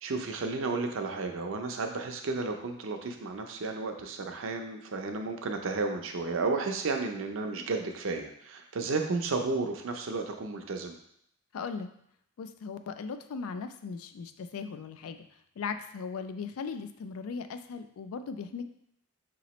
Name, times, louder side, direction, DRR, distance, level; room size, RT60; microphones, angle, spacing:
voice 1, 0.0-11.0, right 3 dB, 60° right, 4 dB, 0.5 m, -33 dB
voice 2, 11.5-11.9 12.4-15.2 15.6-18.7, left 5 dB, 70° left, 9 dB, 0.3 m, -38 dB
4.8 x 3.0 x 3.0 m, 0.72 s
head